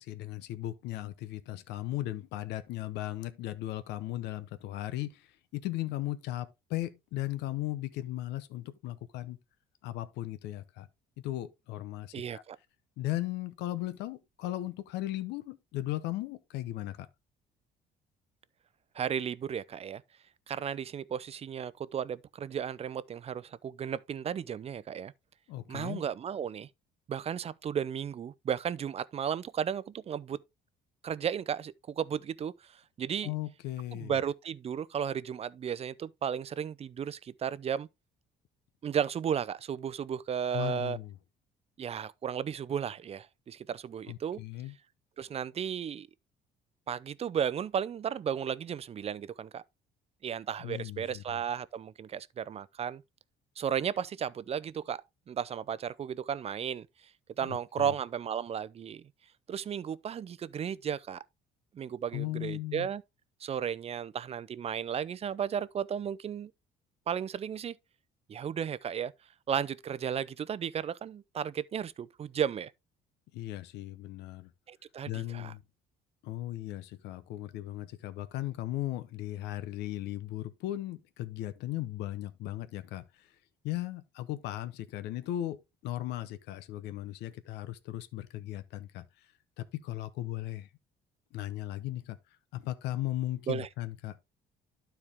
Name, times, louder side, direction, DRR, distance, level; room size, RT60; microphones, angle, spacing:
voice 1, 0.0-9.4 9.8-10.9 11.2-12.4 13.0-17.1 25.5-26.0 33.2-34.2 40.5-41.1 44.1-44.7 50.6-51.4 57.4-57.9 62.1-62.9 73.3-74.5 75.0-75.6 76.2-83.4 83.6-90.7 91.3-94.3, left 15 dB, 85° left, 0.8 m, -37 dB
voice 2, 12.1-12.6 18.9-20.0 20.5-25.1 25.7-26.7 27.1-30.4 31.0-33.3 33.9-37.9 38.8-41.0 41.8-44.4 45.2-46.1 46.9-49.6 50.2-53.0 53.6-56.9 57.4-59.0 59.5-61.2 61.7-63.0 63.4-66.5 67.1-67.8 68.3-69.1 69.5-72.7 74.7-75.5 93.5-93.7, right 8 dB, 35° right, 0.6 m, -34 dB
12.0 x 4.5 x 3.5 m
cardioid pair, 110°, 17 cm